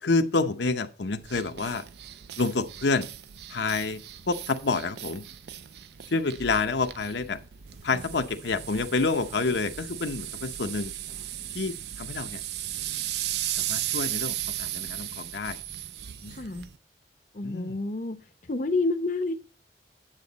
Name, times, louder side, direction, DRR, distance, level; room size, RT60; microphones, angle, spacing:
voice 1, 0.0-1.8 2.4-3.1 3.5-4.0 4.3-5.2 6.1-7.4 7.8-10.9 11.5-12.4 13.6-15.6 16.2-16.3 17.4-17.8, left 3 dB, 75° left, 0.8 m, -28 dB
sound 1, 1.2-16.8, right 12 dB, 65° right, 0.5 m, -36 dB
voice 2, 16.3-16.7 17.3-18.2 18.4-19.3, left 2 dB, 40° left, 0.7 m, -29 dB
9.0 x 7.6 x 4.0 m
head